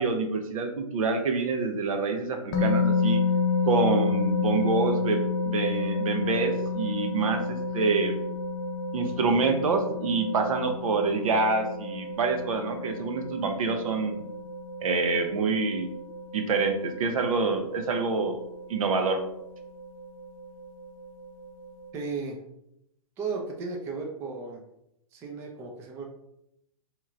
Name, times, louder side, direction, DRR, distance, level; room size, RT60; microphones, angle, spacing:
voice 1, 0.0-3.2 3.6-8.2 8.9-14.2 14.8-15.9 16.3-18.4 18.7-19.2, right 4 dB, 65° right, 6 dB, 0.7 m, -26 dB
sound 1, 2.5-21.9, left 4 dB, 35° left, 0.6 m, -31 dB
voice 2, 21.9-22.4 23.2-24.6 25.1-26.0, right 4 dB, 15° right, 1 dB, 0.4 m, -35 dB
4.3 x 3.0 x 2.5 m, 0.80 s
hypercardioid pair, 145°, 19 cm